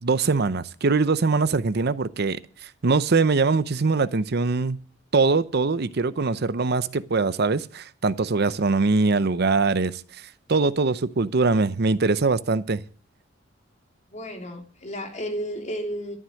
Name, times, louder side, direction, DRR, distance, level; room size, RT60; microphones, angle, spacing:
voice 1, 0.0-4.8 5.1-12.8, right 4 dB, 55° right, 0.7 m, -22 dB
voice 2, 14.1-16.2, equal, 35° left, 3.2 m, -32 dB
13.0 x 11.0 x 6.4 m
head